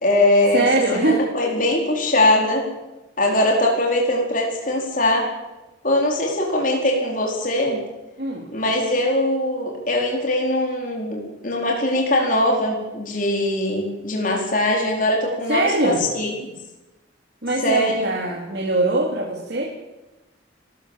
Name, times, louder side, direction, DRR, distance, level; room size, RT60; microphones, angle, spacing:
voice 1, 0.0-0.7 0.9-2.7 3.2-5.3 5.8-7.8 8.5-16.3 17.6-18.1, left 1 dB, 45° left, 0 dB, 4.4 m, -21 dB
voice 2, 0.5-1.2 8.2-8.5 15.5-16.0 17.4-19.6, right 2 dB, 55° right, -2 dB, 3.5 m, -22 dB
29.0 x 14.0 x 7.5 m, 1.1 s
head